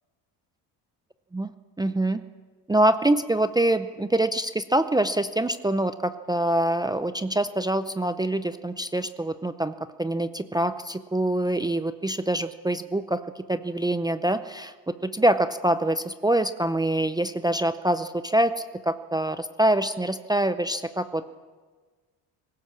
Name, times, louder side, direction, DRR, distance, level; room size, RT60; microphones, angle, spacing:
voice 1, 1.8-2.2 2.7-21.2, right 1 dB, 10° right, 10 dB, 0.6 m, -25 dB
20.5 x 17.5 x 7.4 m, 1.4 s
cardioid pair, 125°, 42 cm